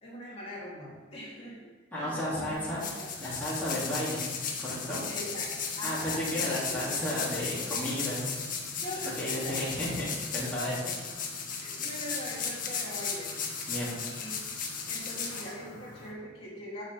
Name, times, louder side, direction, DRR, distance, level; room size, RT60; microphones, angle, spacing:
voice 1, 0.0-1.7 1.9-2.6 3.0-3.1 5.1-6.4 6.9-7.0 8.8-9.6 11.6-13.3 13.8-14.4 14.9-16.8, left 1 dB, 30° left, -6 dB, 3.1 m, -41 dB
voice 2, 1.9-2.8 3.2-4.3 4.6-5.0 5.8-8.3 9.2-10.9 13.7-13.9, equal, 10° left, -9 dB, 2.9 m, -33 dB
sound 1, 2.5-16.1, left 5 dB, 45° left, 1.7 m, -36 dB
17.0 x 6.5 x 3.6 m, 1.4 s
head